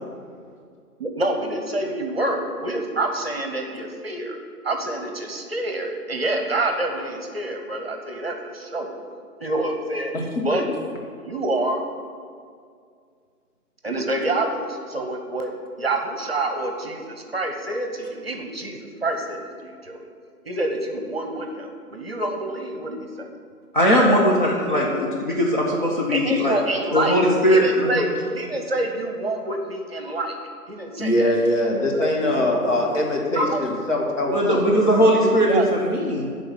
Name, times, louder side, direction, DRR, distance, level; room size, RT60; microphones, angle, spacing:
voice 1, 1.0-4.4 4.6-8.9 9.4-10.1 10.4-10.6 11.2-11.8 13.8-15.5 15.8-20.1 20.5-23.3 26.1-27.2 27.4-30.3 30.7-31.4 31.7-33.0 33.3-33.6 35.4-35.9, right 2 dB, 40° right, 3 dB, 0.9 m, -27 dB
voice 2, 23.7-26.5 26.9-28.0 34.3-36.3, equal, 30° left, -4 dB, 0.9 m, -19 dB
voice 3, 31.0-35.6, left 1 dB, 50° left, -2 dB, 1.8 m, -23 dB
11.5 x 3.9 x 7.5 m, 2.2 s
figure-of-eight pair, 145°, 46 cm